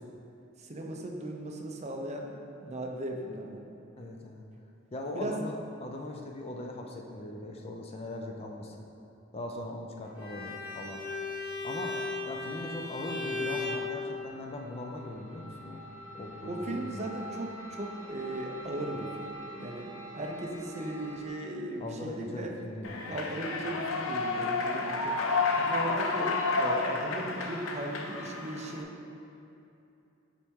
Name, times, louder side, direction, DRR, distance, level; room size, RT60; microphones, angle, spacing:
voice 1, 0.6-3.6 5.1-5.4 16.5-19.9 20.2-22.5 23.1-25.2 25.6-28.9, right 1 dB, 35° right, 1 dB, 0.5 m, -37 dB
voice 2, 4.0-4.4 4.9-8.8 9.3-11.0 11.6-15.8 16.1-17.2 21.8-23.3, left 1 dB, 30° left, 1 dB, 0.5 m, -40 dB
Bowed string instrument, 10.1-13.8, left 3 dB, 5° right, 1.3 m, -36 dB
sound 1, 12.8-21.3, right 1 dB, 10° left, 1.4 m, -46 dB
Human voice / Clapping / Cheering, 22.8-28.8, left 3 dB, 85° left, 0.5 m, -30 dB
7.4 x 4.3 x 3.6 m, 2.8 s
head